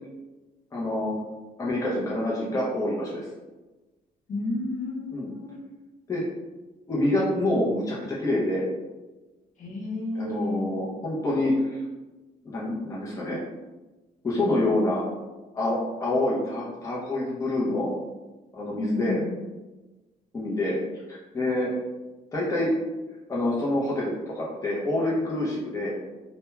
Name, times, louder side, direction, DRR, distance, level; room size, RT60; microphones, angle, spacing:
voice 1, 0.7-1.2 1.6-3.3 5.1-5.3 6.1-6.2 6.9-8.6 10.1-11.8 12.4-13.4 14.2-15.0 15.5-17.9 18.5-19.2 20.3-20.8 21.1-21.7 22.3-22.7 23.3-25.9, left 1 dB, 20° left, -6 dB, 0.6 m, -27 dB
voice 2, 4.3-5.6 9.6-10.7 18.8-19.3, left 2 dB, 50° left, -3 dB, 0.8 m, -31 dB
2.2 x 2.2 x 3.0 m, 1.2 s
cardioid pair, 110°, 17 cm